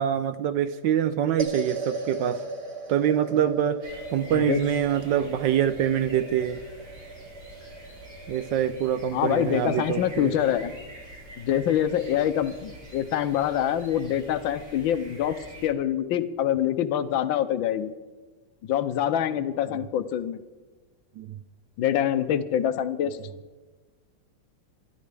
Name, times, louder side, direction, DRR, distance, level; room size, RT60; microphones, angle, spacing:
voice 1, 0.0-2.4 2.9-3.8 4.1-6.6 8.3-10.4 21.2-21.4, right 9 dB, 75° right, 11 dB, 1.1 m, -25 dB
sound 1, 1.4-11.8, right 3 dB, 20° right, 1.0 m, -39 dB
sound 2, 3.8-15.7, right 1 dB, 50° right, 4.9 m, -46 dB
voice 2, 9.1-10.7 11.4-17.9 18.7-20.4 21.8-23.2, left 10 dB, 70° left, 11 dB, 1.4 m, -25 dB
21.5 x 12.0 x 3.4 m, 1.3 s
omnidirectional pair, 2.3 m